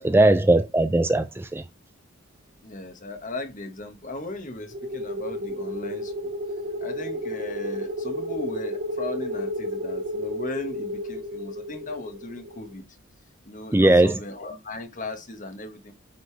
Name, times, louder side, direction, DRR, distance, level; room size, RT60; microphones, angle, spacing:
voice 1, 0.0-1.6 13.7-14.2, right 2 dB, 10° right, 0.4 m, -19 dB
voice 2, 2.6-6.3 6.8-12.8 13.4-15.9, left 2 dB, 40° left, 1.3 m, -37 dB
sound 1, 4.7-12.7, left 1 dB, 55° right, 2.8 m, -32 dB
9.4 x 4.0 x 3.4 m
head